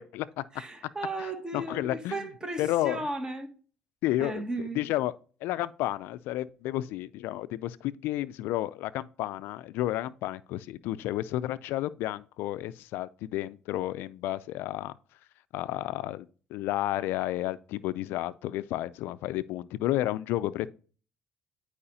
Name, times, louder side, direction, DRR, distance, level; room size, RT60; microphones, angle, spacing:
voice 1, 0.0-0.4 1.5-2.3 2.6-3.0 4.0-4.4 4.7-5.1 5.4-14.9 15.5-20.7, left 15 dB, 80° left, 0.3 m, -31 dB
voice 2, 0.5-3.5 4.2-4.8, right 2 dB, 20° right, 1.6 m, -35 dB
9.9 x 4.7 x 2.7 m
supercardioid pair, 85°, 4 cm